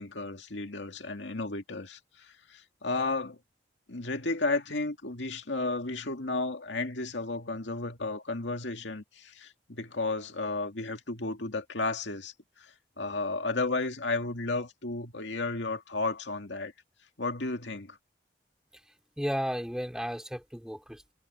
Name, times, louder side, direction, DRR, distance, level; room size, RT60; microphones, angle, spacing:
voice 1, 0.0-3.4 3.9-16.7 17.2-18.0, left 3 dB, 85° left, 2.2 m, -33 dB
voice 2, 19.2-21.1, equal, 5° right, 4.9 m, -34 dB
head